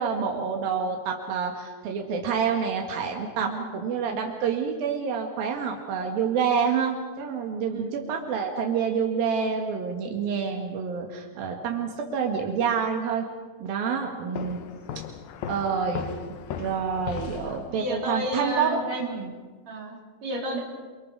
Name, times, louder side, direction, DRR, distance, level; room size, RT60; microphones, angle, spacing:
voice 1, 0.0-13.3 13.6-14.6 15.5-16.0 16.6-19.3, right 6 dB, 90° right, 2 dB, 3.7 m, -28 dB
sound 1, 14.4-18.0, left 8 dB, 85° left, 2.9 m, -37 dB
voice 2, 17.7-19.1 19.7-20.6, right 1 dB, 50° right, -2 dB, 5.0 m, -32 dB
28.0 x 25.5 x 4.8 m, 1.4 s
omnidirectional pair, 4.0 m